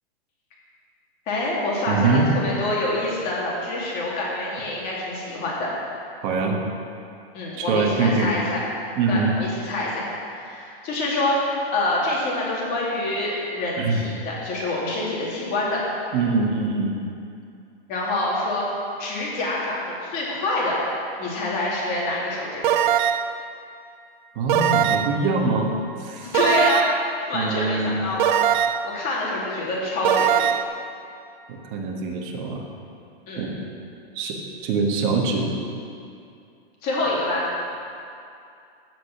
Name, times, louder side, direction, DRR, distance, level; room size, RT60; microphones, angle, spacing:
voice 1, 1.3-5.7 7.3-8.7 9.1-15.8 17.9-18.7 19.0-20.8 21.2-22.6 26.2-28.3 28.8-30.6 33.3-33.5 36.8-37.4, left 2 dB, 30° left, -5 dB, 2.5 m, -26 dB
voice 2, 1.9-2.3 6.2-6.6 7.6-8.3 9.0-9.4 13.8-14.1 16.1-17.0 24.3-25.7 26.0-26.3 27.3-28.0 31.5-32.6 33.4-33.7 34.1-35.5, right 3 dB, 30° right, 0 dB, 1.5 m, -23 dB
sound 1, 22.6-23.4 24.5-25.2 26.3-27.1 28.2-28.9 30.0-30.6, right 9 dB, 50° right, 0.5 m, -21 dB
15.5 x 5.2 x 5.9 m, 2.5 s
hypercardioid pair, 160°, 31 cm